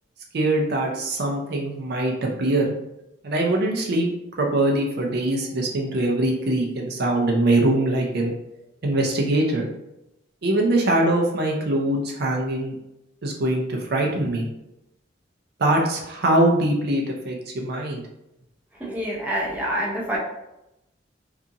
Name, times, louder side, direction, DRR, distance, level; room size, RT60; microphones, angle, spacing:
voice 1, 0.3-2.7 3.2-4.1 4.4-8.3 8.8-9.7 10.4-12.7 13.2-14.5 15.6-18.0, right 1 dB, 60° right, 0 dB, 0.5 m, -22 dB
voice 2, 18.8-20.2, equal, 10° right, -4 dB, 0.6 m, -26 dB
2.8 x 2.4 x 2.5 m, 0.89 s
head